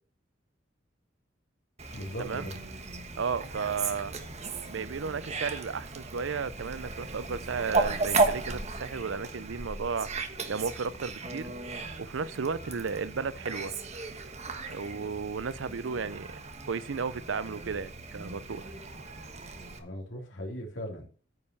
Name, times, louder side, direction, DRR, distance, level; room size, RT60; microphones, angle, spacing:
Fowl, 1.8-19.8, right 3 dB, 35° right, 1.2 m, -35 dB
voice 1, 1.9-2.6 19.8-21.1, equal, 80° left, 3.0 m, -38 dB
voice 2, 3.2-4.1 4.7-10.1 10.5-11.5 12.0-13.7 14.7-16.4 16.6-18.7, right 5 dB, 80° right, 0.6 m, -34 dB
9.3 x 5.4 x 6.8 m
head